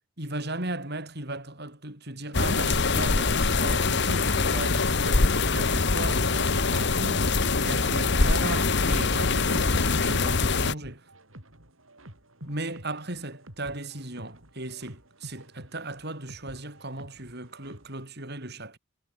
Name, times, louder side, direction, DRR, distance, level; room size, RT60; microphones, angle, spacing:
voice 1, 0.2-11.0 12.4-18.8, right 2 dB, 50° right, 8.0 m, -37 dB
sound 1, 2.3-10.7, left 3 dB, 55° left, 1.4 m, -24 dB
sound 2, 11.0-18.0, right 1 dB, 70° right, 7.0 m, -49 dB
head